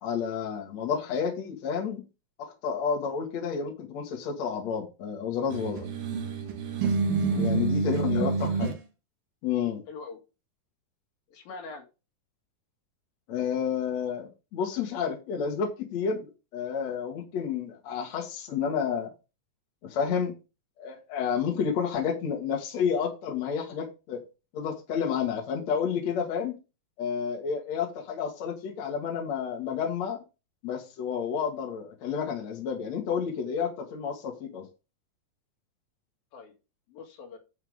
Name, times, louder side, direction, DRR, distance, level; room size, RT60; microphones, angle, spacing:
voice 1, 0.0-2.0 2.4-5.9 7.4-8.7 9.4-9.8 13.3-19.1 19.8-20.3 20.8-24.2 24.5-26.5 27.0-30.2 30.6-34.7, left 7 dB, 50° left, 3.0 m, -30 dB
sound 1, 5.5-8.8, right 4 dB, 90° right, 3.5 m, -27 dB
voice 2, 8.0-8.4 9.9-10.2 11.3-11.9 36.3-36.5 36.9-37.4, left 4 dB, 75° left, 3.8 m, -42 dB
10.5 x 7.3 x 3.6 m
omnidirectional pair, 4.2 m